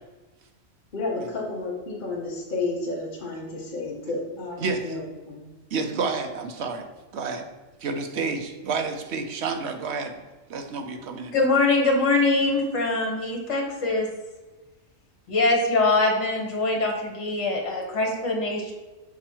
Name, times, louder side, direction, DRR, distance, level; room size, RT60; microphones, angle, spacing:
voice 1, 0.9-5.5, left 3 dB, 40° left, -3 dB, 1.1 m, -31 dB
voice 2, 4.6-4.9 5.7-6.9 7.1-7.5 7.8-10.2 10.5-11.3, right 4 dB, 60° right, 6 dB, 0.9 m, -29 dB
voice 3, 11.3-14.1 15.3-18.7, left 2 dB, 60° left, 1 dB, 1.6 m, -23 dB
6.2 x 4.3 x 4.4 m, 1.2 s
omnidirectional pair, 1.4 m